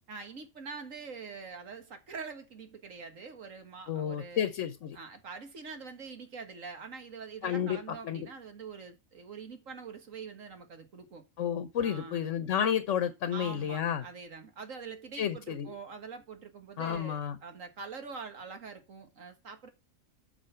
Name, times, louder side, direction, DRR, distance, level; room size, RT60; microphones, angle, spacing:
voice 1, 0.1-4.5 4.9-11.2 11.8-12.2 13.3-19.7, right 5 dB, 65° right, 1.9 m, -44 dB
voice 2, 3.9-5.0 7.4-8.3 11.4-14.0 15.2-15.7 16.8-17.4, left 9 dB, 65° left, 1.2 m, -31 dB
7.9 x 5.9 x 5.6 m
omnidirectional pair, 1.4 m